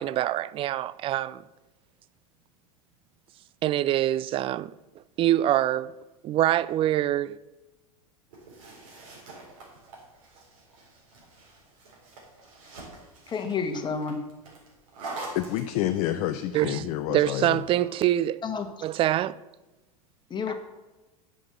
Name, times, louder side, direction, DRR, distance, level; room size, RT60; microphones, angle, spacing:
voice 1, 0.0-1.4 3.6-4.7 5.2-5.9 6.2-7.4 16.5-18.4 18.8-19.4, right 13 dB, 30° right, 0.4 m, -25 dB
sound 1, 8.3-16.2 17.4-18.2, right 2 dB, 60° right, 3.7 m, -45 dB
voice 2, 13.3-14.2 18.4-18.7 20.3-20.5, left 5 dB, 25° left, 1.5 m, -29 dB
voice 3, 15.3-17.6, left 13 dB, 45° left, 0.6 m, -28 dB
9.6 x 6.3 x 6.6 m
figure-of-eight pair, 85°, 19 cm